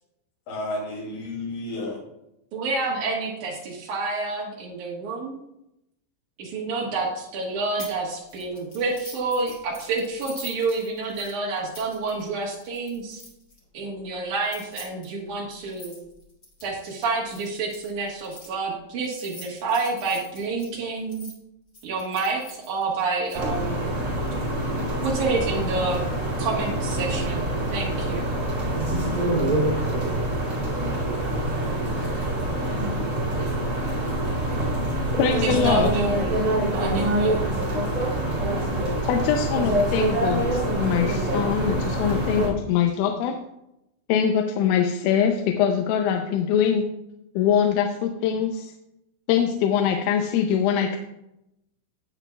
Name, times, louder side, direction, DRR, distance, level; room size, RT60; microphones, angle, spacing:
voice 1, 0.5-2.0 32.0-33.2, left 1 dB, 55° left, -2 dB, 3.9 m, -34 dB
voice 2, 2.5-5.4 6.4-13.2 13.7-16.0 16.6-21.3 21.8-23.9 25.0-26.0 26.4-28.3 35.4-36.4 36.7-37.6, right 3 dB, 85° right, -3 dB, 1.7 m, -28 dB
sound 1, 7.8-8.0 8.3-13.6 14.3-18.5 19.0-21.3 21.7-23.4, left 1 dB, 25° left, 2.6 m, -44 dB
sound 2, 23.3-42.5, right 1 dB, 40° right, 1.4 m, -25 dB
voice 3, 33.6-34.0 35.2-35.9 37.7-37.8 39.0-40.4 40.8-43.4 44.1-46.9 47.4-48.7 49.3-51.0, left 8 dB, 85° left, 4 dB, 3.2 m, -23 dB
17.5 x 6.0 x 2.3 m, 0.85 s
omnidirectional pair, 5.9 m